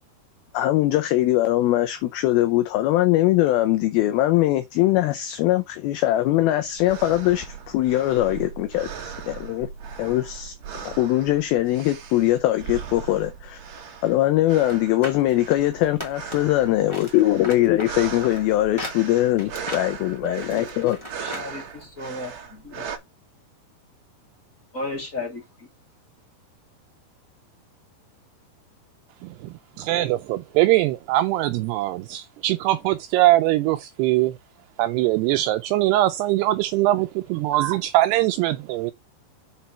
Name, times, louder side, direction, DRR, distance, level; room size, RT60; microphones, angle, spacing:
voice 1, 0.5-9.7 10.0-13.6 14.0-21.0, left 15 dB, 75° left, 2.4 m, -21 dB
sound 1, 6.6-23.0, right 7 dB, 55° right, 2.0 m, -38 dB
sound 2, 14.6-16.6 16.9-21.5 21.8-21.9, equal, 10° left, 1.5 m, -38 dB
voice 2, 20.2-22.8 24.7-25.4 29.9-30.0, left 2 dB, 25° left, 1.8 m, -34 dB
voice 3, 29.2-34.3 34.8-38.9, right 16 dB, 80° right, 2.6 m, -22 dB
6.9 x 4.4 x 5.8 m
omnidirectional pair, 4.9 m